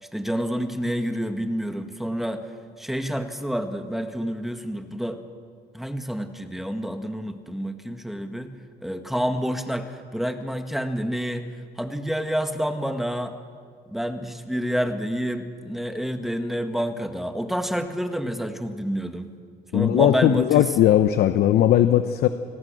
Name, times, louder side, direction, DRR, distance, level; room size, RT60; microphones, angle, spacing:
voice 1, 0.1-2.4 2.8-5.2 5.7-8.5 8.8-11.5 11.8-13.3 13.9-19.3 19.7-20.8, equal, ahead, 6 dB, 1.7 m, -28 dB
voice 2, 19.7-22.3, left 12 dB, 70° left, 10 dB, 0.9 m, -18 dB
28.0 x 18.5 x 6.4 m, 2.1 s
cardioid pair, 110°, 17 cm